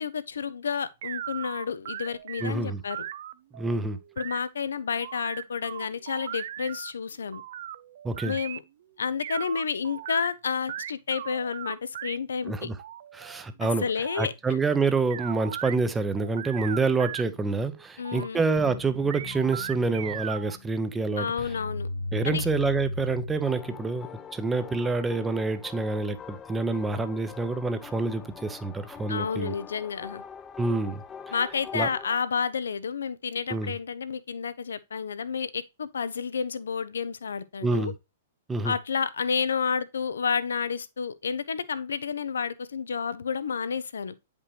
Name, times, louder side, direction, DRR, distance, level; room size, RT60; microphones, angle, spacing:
voice 1, 0.0-3.1 4.2-7.4 8.2-8.6 9.0-12.7 13.6-14.6 18.0-18.5 21.2-21.9 22.2-22.5 29.1-30.2 31.3-37.9 38.6-44.1, left 6 dB, 65° left, 0.7 m, -30 dB
sound 1, 1.0-2.5 2.9-4.4 5.0-6.9 7.3-8.6 9.2-10.3 10.7-12.2 12.8-15.8 16.2-17.2 17.6-18.3 19.1-20.6, right 11 dB, 50° right, 0.5 m, -38 dB
voice 2, 2.4-2.8 3.5-4.0 8.0-8.4 12.5-12.8 13.1-13.8 14.2-21.3 22.1-29.5 30.6-31.3 31.7-31.9 33.5-33.7 37.6-37.9 38.5-38.7, right 3 dB, 10° right, 0.8 m, -27 dB
sound 2, 18.6-24.2, left 2 dB, 45° left, 1.2 m, -36 dB
sound 3, 23.4-32.2, left 7 dB, 20° left, 0.8 m, -44 dB
9.6 x 5.3 x 3.3 m
figure-of-eight pair, 105°, 0 cm